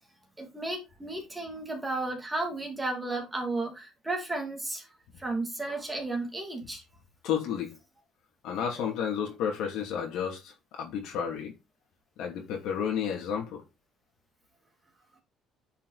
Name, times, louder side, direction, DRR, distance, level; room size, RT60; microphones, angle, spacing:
voice 1, 0.4-4.9 5.2-6.8, right 2 dB, 10° right, 2.9 m, -33 dB
voice 2, 7.2-7.7 8.4-11.5 12.2-13.6, left 8 dB, 75° left, 2.8 m, -31 dB
10.0 x 5.7 x 4.2 m
cardioid pair, 150°, 0 cm